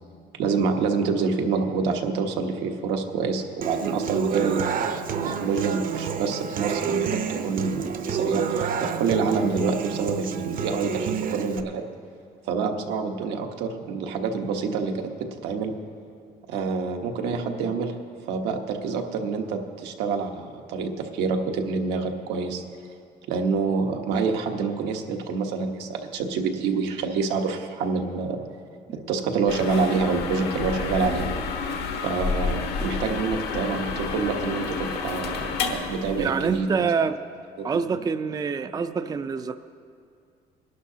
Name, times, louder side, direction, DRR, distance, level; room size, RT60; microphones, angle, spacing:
voice 1, 0.4-4.9 5.4-11.8 12.5-15.7 16.5-17.9 18.3-22.6 23.3-28.4 29.1-31.2 31.9-36.7 37.6-37.7, right 5 dB, 90° right, 3 dB, 1.2 m, -27 dB
Human voice / Acoustic guitar, 3.6-11.6, right 7 dB, 55° right, 0.8 m, -29 dB
sound 1, 29.5-36.6, left 5 dB, 75° left, 1.3 m, -30 dB
voice 2, 36.2-37.2 37.6-39.6, right 5 dB, 20° right, 10 dB, 0.4 m, -26 dB
20.5 x 11.5 x 2.8 m, 2.4 s
cardioid pair, 110°, 17 cm